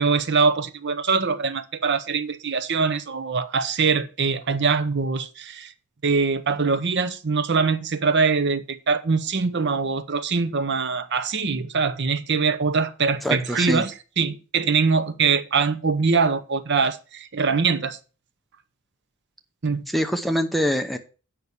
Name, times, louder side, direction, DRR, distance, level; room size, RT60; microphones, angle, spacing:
voice 1, 0.0-5.7 6.0-18.0 19.6-19.8, right 5 dB, 50° right, 0.8 m, -23 dB
voice 2, 13.2-13.9 19.9-21.0, equal, ahead, 0.7 m, -24 dB
8.2 x 5.9 x 6.9 m
head